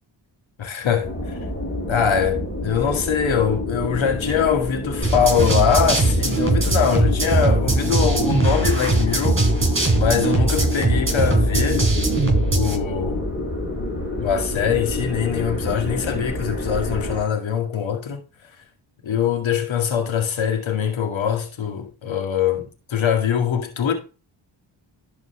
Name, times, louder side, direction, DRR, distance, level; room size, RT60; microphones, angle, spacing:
voice 1, 0.6-1.1 1.9-9.5 10.0-11.9 12.5-13.2 14.2-18.2 19.0-23.9, left 8 dB, 65° left, 2.2 m, -22 dB
sound 1, 1.0-17.2, left 2 dB, 20° left, 4.4 m, -28 dB
sound 2, 5.0-12.8, right 3 dB, 25° right, 4.5 m, -20 dB
11.5 x 4.8 x 3.2 m
supercardioid pair, 55°, 50 cm